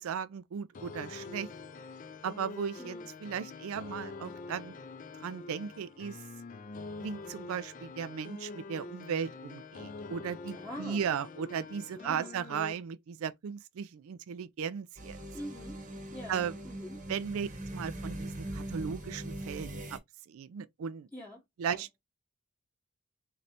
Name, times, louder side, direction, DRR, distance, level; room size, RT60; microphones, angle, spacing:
voice 1, 0.0-1.5 2.2-4.7 5.1-6.2 7.0-15.2 16.3-16.5 17.1-20.0 20.3-21.1 21.6-22.0, right 7 dB, 70° right, 0.3 m, -36 dB
sound 1, 0.7-12.7, left 3 dB, 35° left, 0.3 m, -45 dB
voice 2, 2.8-3.1 10.5-11.0 11.9-12.4 15.3-15.8 16.1-17.0 21.1-21.4 21.7-21.8, equal, 5° left, 0.8 m, -44 dB
sound 2, 15.0-20.0, right 1 dB, 35° right, 0.9 m, -41 dB
3.9 x 3.2 x 2.8 m
head